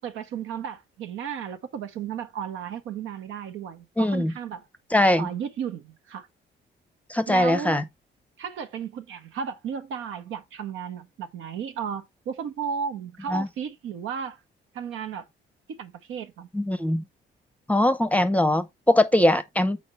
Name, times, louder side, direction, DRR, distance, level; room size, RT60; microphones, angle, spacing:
voice 1, 0.0-4.7 5.2-6.3 7.3-7.8 8.4-14.4 14.7-15.2 15.7-16.5, right 7 dB, 80° right, 0.9 m, -34 dB
voice 2, 4.0-4.3 4.9-5.3 7.1-7.8 13.3-13.5 16.5-17.0 17.7-19.8, left 1 dB, 5° left, 0.6 m, -21 dB
4.3 x 4.2 x 5.5 m
cardioid pair, 90°, 20 cm